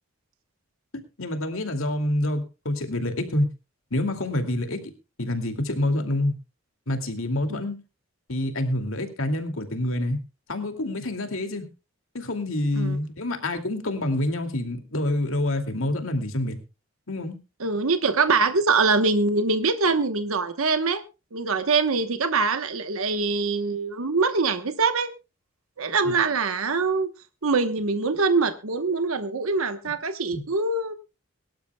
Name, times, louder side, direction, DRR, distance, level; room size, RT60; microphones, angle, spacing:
voice 1, 1.2-3.5 3.9-4.8 5.2-6.3 6.9-7.8 8.3-10.2 10.5-11.6 12.1-16.6 17.1-17.4 26.0-26.1 30.3-30.4, left 1 dB, 80° left, 6 dB, 2.5 m, -27 dB
voice 2, 17.6-21.0 21.3-25.1 25.8-27.1 27.4-30.9, right 4 dB, 90° right, 9 dB, 1.1 m, -23 dB
23.0 x 12.0 x 2.3 m, 0.29 s
head